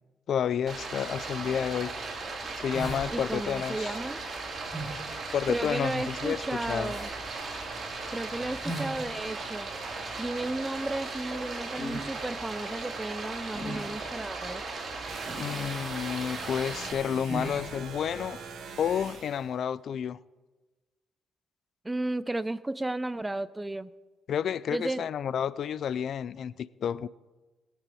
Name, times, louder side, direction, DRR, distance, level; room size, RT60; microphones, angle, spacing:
voice 1, 0.3-1.9 2.5-4.0 5.3-6.4 6.7-6.9 15.4-18.4 18.8-20.2 24.3-27.1, left 8 dB, 65° left, 0.3 m, -30 dB
Stream, 0.7-16.9, right 3 dB, 45° right, 3.1 m, -37 dB
sound 1, 2.1-18.4, right 1 dB, 15° left, 3.4 m, -43 dB
voice 2, 3.1-4.2 5.5-7.1 8.1-9.7 10.2-14.6 21.8-23.9 24.7-25.1, right 2 dB, 15° right, 0.5 m, -33 dB
sound 2, 15.1-19.5, right 5 dB, 60° right, 1.9 m, -43 dB
21.0 x 7.6 x 4.9 m
cardioid pair, 90°, 0 cm